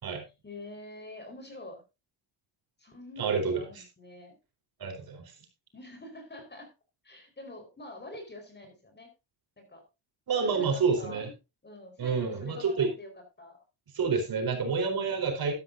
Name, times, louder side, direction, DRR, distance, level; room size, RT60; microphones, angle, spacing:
voice 1, 0.4-1.8 2.8-4.4 5.7-6.7 7.0-9.1 9.6-9.8 10.3-11.2 11.6-13.1 13.4-13.6, left 1 dB, 20° left, 5 dB, 4.6 m, -46 dB
voice 2, 3.2-3.6 4.8-5.3 10.3-11.3 12.0-12.9 13.9-15.5, right 5 dB, 50° right, 3 dB, 4.3 m, -28 dB
12.5 x 12.5 x 2.7 m, 0.27 s
cardioid pair, 105°, 47 cm